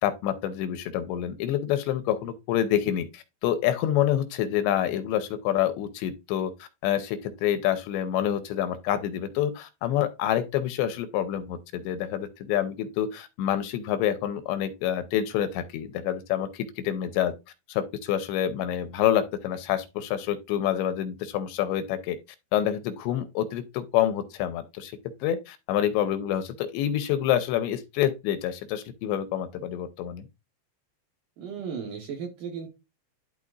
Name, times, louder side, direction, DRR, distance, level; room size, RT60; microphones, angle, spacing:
voice 1, 0.0-17.3 17.7-22.2 22.5-24.9 25.2-30.3, left 11 dB, 80° left, 2.9 m, -27 dB
voice 2, 31.4-32.7, right 6 dB, 65° right, 2.3 m, -35 dB
12.0 x 4.4 x 2.5 m
omnidirectional pair, 5.2 m